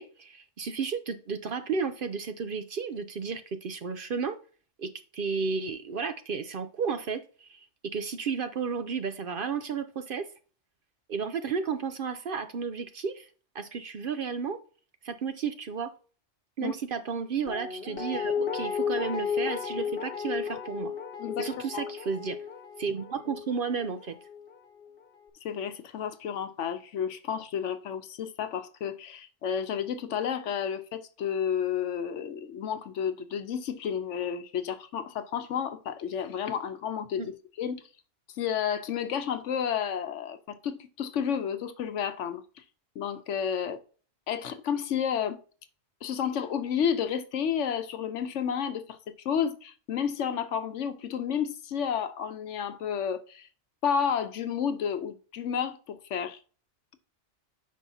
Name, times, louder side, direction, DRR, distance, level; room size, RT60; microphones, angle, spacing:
voice 1, 0.0-4.4 4.8-10.3 11.1-13.3 13.5-14.6 15.0-15.9 16.6-20.9 21.4-22.4 22.8-24.2 37.2-37.3, right 5 dB, 55° right, 0.7 m, -33 dB
Guitar, 17.5-24.5 24.8-24.9, left 7 dB, 50° left, 1.1 m, -34 dB
voice 2, 21.2-21.9 25.4-37.8 38.4-42.4 43.0-43.8 44.3-45.4 46.0-49.0 49.2-53.5 53.8-56.4, left 8 dB, 80° left, 1.1 m, -31 dB
9.3 x 5.5 x 2.7 m
omnidirectional pair, 1.2 m